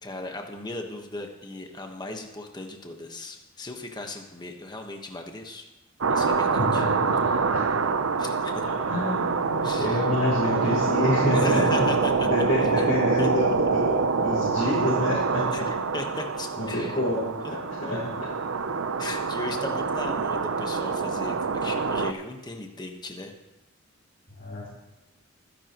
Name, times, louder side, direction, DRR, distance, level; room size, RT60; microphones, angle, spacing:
voice 1, 0.0-5.7 6.1-6.8 8.2-8.7 9.6-10.0 11.2-12.3 12.8-12.9 13.2-13.3 15.5-17.0 19.0-23.3, left 2 dB, 20° left, 3 dB, 1.3 m, -37 dB
sound 1, 6.0-22.1, right 4 dB, 75° right, 0.7 m, -25 dB
voice 2, 6.6-7.9 8.6-11.6 12.2-13.9 14.2-15.7 16.6-17.3 17.7-18.3 24.4-24.7, left 1 dB, 50° left, -9 dB, 4.9 m, -28 dB
24.5 x 10.5 x 3.1 m, 1.0 s
head